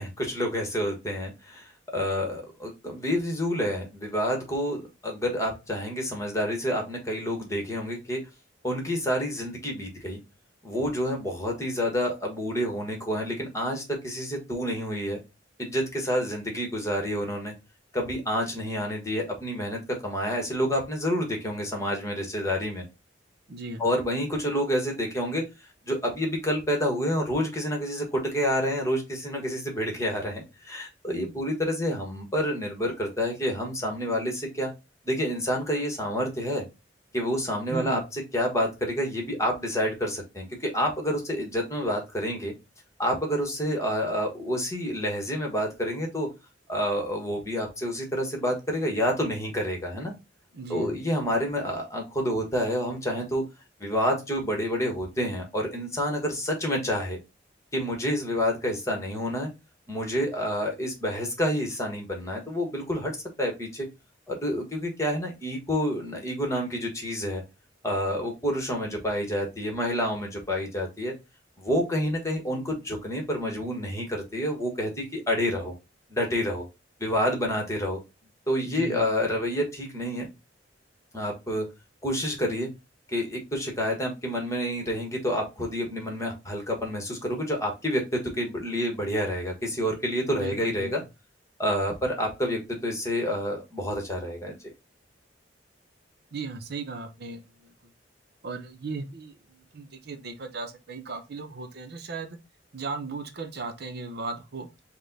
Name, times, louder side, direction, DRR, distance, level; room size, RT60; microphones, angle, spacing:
voice 1, 0.0-8.2 8.6-10.2 10.6-15.2 15.6-17.5 17.9-22.8 23.8-25.4 25.9-34.7 35.0-36.6 37.1-42.5 43.0-46.3 46.7-50.1 50.7-53.4 53.8-57.2 57.7-59.5 59.9-63.1 63.4-63.9 64.3-67.4 67.8-71.1 71.6-75.7 76.1-76.6 77.0-78.0 78.5-80.3 81.1-81.7 82.0-82.7 83.1-91.0 91.6-94.5, equal, 15° left, 1.3 m, -28 dB
voice 2, 23.5-23.8 37.7-38.0 50.5-50.9 78.6-79.0 90.2-90.9 96.3-97.7 98.4-102.4 102.7-104.7, right 3 dB, 60° right, 0.7 m, -36 dB
5.1 x 2.2 x 3.9 m
head